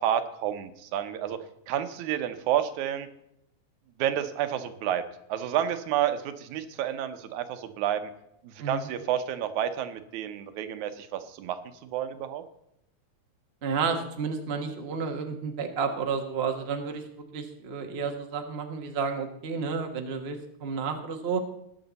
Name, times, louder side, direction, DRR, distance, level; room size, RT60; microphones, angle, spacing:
voice 1, 0.0-1.4 1.7-3.1 4.0-5.0 5.3-8.1 8.4-12.4, right 10 dB, 80° right, 10 dB, 2.2 m, -30 dB
voice 2, 13.6-17.0 17.3-21.4, right 5 dB, 50° right, 4 dB, 0.7 m, -31 dB
20.0 x 7.2 x 4.0 m, 0.79 s
omnidirectional pair, 3.4 m